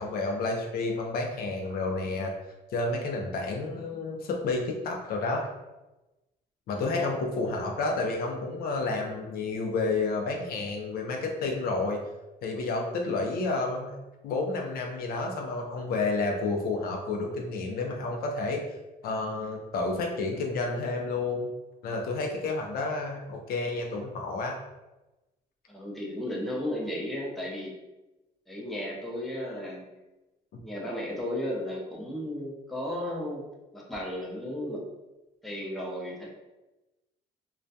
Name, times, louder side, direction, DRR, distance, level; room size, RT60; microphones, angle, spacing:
voice 1, 0.0-2.3 2.7-5.5 6.7-12.0 12.4-13.9 14.2-18.6 19.0-21.5 21.8-24.6, left 3 dB, 65° left, 1 dB, 0.5 m, -30 dB
voice 2, 6.7-7.1 25.7-27.7 28.5-29.8 30.6-33.4 33.7-34.8 35.4-36.3, left 1 dB, ahead, -4 dB, 0.5 m, -34 dB
2.2 x 2.2 x 2.6 m, 1.0 s
cardioid pair, 110°, 17 cm